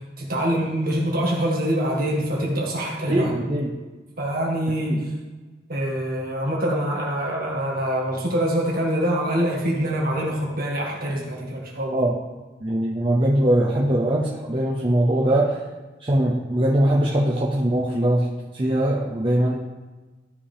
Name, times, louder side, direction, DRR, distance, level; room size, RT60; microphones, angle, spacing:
voice 1, 0.2-3.3 4.2-5.1 5.7-12.1, right 1 dB, 50° right, -2 dB, 1.9 m, -25 dB
voice 2, 3.1-3.7 4.9-5.0 11.9-12.1 12.6-15.6 16.0-18.3 18.5-19.6, right 1 dB, 25° right, -4 dB, 0.7 m, -21 dB
13.0 x 4.9 x 3.5 m, 1.3 s
head